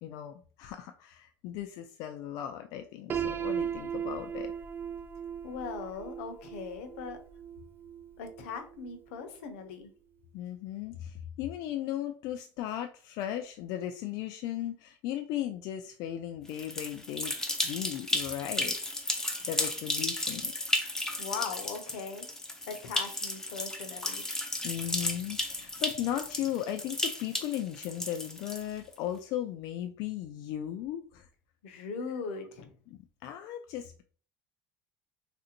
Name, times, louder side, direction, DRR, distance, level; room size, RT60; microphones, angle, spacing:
voice 1, 0.0-4.5 10.3-18.8 19.4-20.5 24.6-31.3 33.2-34.0, left 11 dB, 65° left, 6 dB, 0.3 m, -36 dB
Piano, 3.1-8.9, right 8 dB, 30° right, 0.4 m, -37 dB
voice 2, 5.4-7.2 8.2-9.9 21.2-22.3 22.7-24.2 31.6-32.7, left 5 dB, 85° left, 7 dB, 0.7 m, -39 dB
sound 1, 16.5-28.9, left 1 dB, 10° left, 0.7 m, -34 dB
3.3 x 2.6 x 2.8 m, 0.42 s
supercardioid pair, 115°, 7 cm